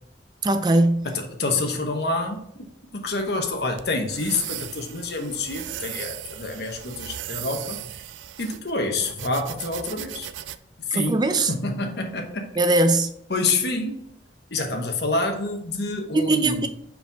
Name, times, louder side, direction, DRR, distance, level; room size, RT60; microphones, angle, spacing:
voice 1, 0.4-1.1 10.9-11.5 12.6-13.1 16.1-16.7, right 2 dB, 25° right, 0.4 m, -20 dB
voice 2, 1.0-2.5 2.9-7.8 8.4-10.3 10.8-12.5 13.3-14.0 14.5-16.7, left 3 dB, 60° left, 1.0 m, -27 dB
sound 1, 3.1-10.6, right 12 dB, 90° right, 0.4 m, -38 dB
5.6 x 5.0 x 3.5 m
head